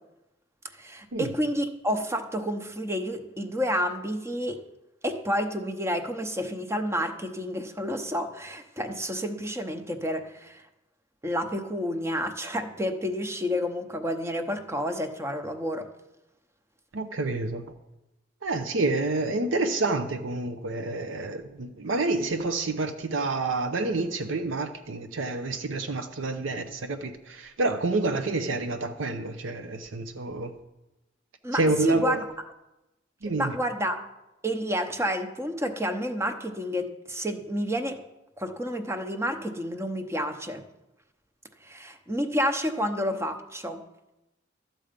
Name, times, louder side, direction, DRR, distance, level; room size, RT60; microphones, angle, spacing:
voice 1, 0.7-4.6 5.0-10.6 11.2-15.9 31.4-32.2 33.4-34.1 34.4-38.0 38.4-40.6 41.6-43.8, equal, 15° right, 7 dB, 0.8 m, -30 dB
voice 2, 16.9-17.6 18.4-30.5 31.5-32.2 33.2-33.6, right 2 dB, 90° right, 8 dB, 0.7 m, -28 dB
13.0 x 7.6 x 5.2 m, 0.97 s
head